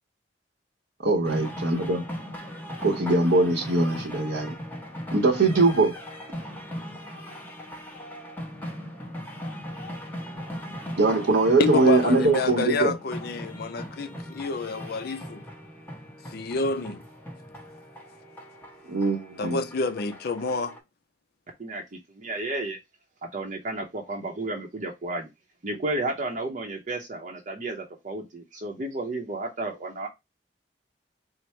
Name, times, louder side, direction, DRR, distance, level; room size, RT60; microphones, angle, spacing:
voice 1, 1.0-2.0 2.8-4.5 5.1-5.9 11.0-12.9 18.9-19.6, right 3 dB, 85° right, 0.9 m, -22 dB
sound 1, 1.2-20.8, equal, 10° left, 0.8 m, -39 dB
voice 2, 11.6-15.5 16.3-17.0 19.4-20.8, left 4 dB, 60° left, 0.4 m, -28 dB
voice 3, 22.1-22.8 23.3-25.3 25.6-30.1, right 2 dB, 45° right, 0.7 m, -32 dB
4.6 x 2.0 x 4.2 m
head